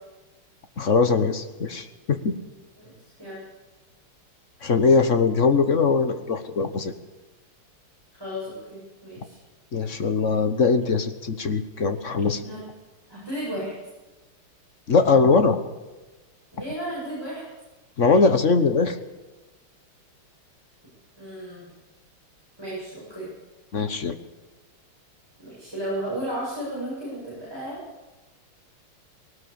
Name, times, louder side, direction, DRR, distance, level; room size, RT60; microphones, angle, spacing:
voice 1, 0.8-2.3 4.6-6.9 9.7-12.4 14.9-15.6 18.0-19.0 23.7-24.2, left 4 dB, 40° left, 9 dB, 1.3 m, -21 dB
voice 2, 2.8-3.4 8.2-9.4 12.4-12.6 13.1-13.7 16.5-17.4 21.2-21.7 22.6-23.3 25.4-27.8, right 1 dB, 10° right, -7 dB, 7.9 m, -34 dB
20.0 x 18.5 x 7.1 m, 1.1 s
omnidirectional pair, 2.3 m